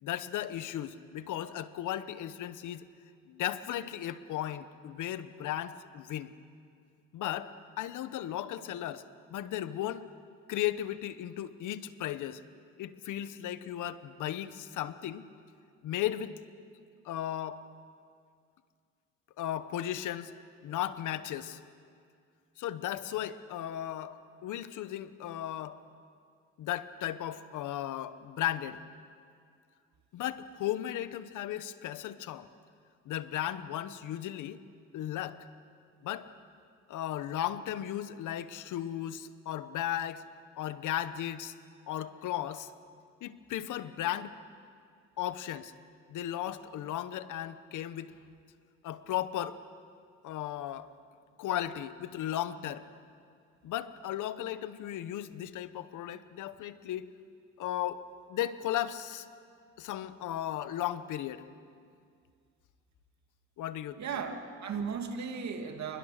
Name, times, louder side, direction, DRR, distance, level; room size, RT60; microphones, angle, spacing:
voice 1, 0.0-2.8 3.3-6.3 7.1-9.0 9.3-10.1 10.5-12.4 12.8-15.3 15.8-16.3 17.0-17.6 19.4-20.3 20.6-21.6 22.6-25.8 26.6-28.8 30.1-32.5 33.0-34.6 34.9-35.4 36.0-36.3 36.9-40.2 40.6-41.5 41.9-42.7 43.2-44.3 45.2-45.7 46.1-48.2 48.8-49.6 50.2-50.9 51.4-52.9 53.6-57.1 57.6-59.3 59.8-61.4 63.6-64.0, left 12 dB, 80° left, 13 dB, 1.0 m, -35 dB
voice 2, 64.0-66.0, right 6 dB, 65° right, 5 dB, 2.5 m, -36 dB
28.0 x 20.5 x 6.6 m, 2.2 s
cardioid pair, 90°, 30 cm